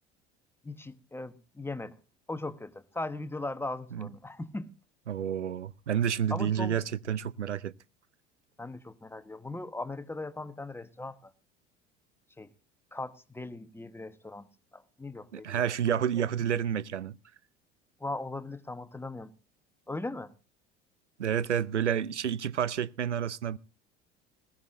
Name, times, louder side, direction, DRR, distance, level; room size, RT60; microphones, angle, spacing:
voice 1, 0.6-1.9 2.3-4.7 6.3-6.8 8.6-11.3 12.4-12.5 12.9-14.5 14.7-15.7 16.2-16.3 18.0-19.3 19.9-20.3, left 2 dB, 5° left, 1.1 m, -38 dB
voice 2, 5.1-7.7 15.3-17.2 21.2-23.6, right 9 dB, 85° right, 0.6 m, -29 dB
20.0 x 16.0 x 2.5 m
figure-of-eight pair, 65°, 34 cm